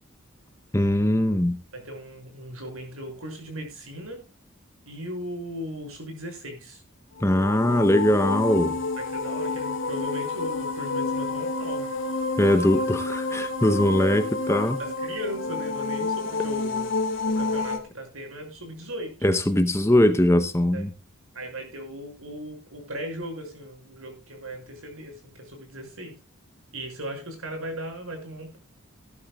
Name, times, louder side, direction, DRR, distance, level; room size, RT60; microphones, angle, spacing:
voice 1, 0.7-1.6 7.2-8.7 12.4-14.8 19.2-20.9, left 1 dB, 10° left, 10 dB, 0.7 m, -21 dB
voice 2, 1.7-4.2 4.8-6.8 8.7-11.9 12.4-12.7 14.8-16.9 17.3-19.2 20.7-20.8 21.3-26.1 26.7-28.6, equal, 80° right, 4 dB, 6.2 m, -37 dB
sound 1, 7.2-17.8, left 3 dB, 65° left, 2.5 m, -29 dB
18.0 x 12.5 x 2.3 m, 0.29 s
head